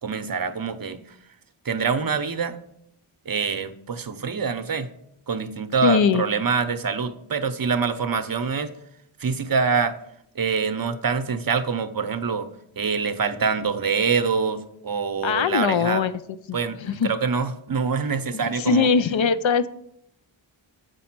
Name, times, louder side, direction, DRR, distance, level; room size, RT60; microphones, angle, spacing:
voice 1, 0.0-1.0 1.6-2.6 3.3-4.9 5.3-8.7 9.2-10.0 10.3-12.5 12.8-16.1 16.5-18.9, right 5 dB, 45° right, 10 dB, 0.7 m, -25 dB
voice 2, 5.8-6.2 15.2-17.1 18.3-19.7, left 6 dB, 70° left, 14 dB, 0.6 m, -22 dB
8.2 x 5.2 x 5.9 m, 0.74 s
wide cardioid pair, 85°, 48 cm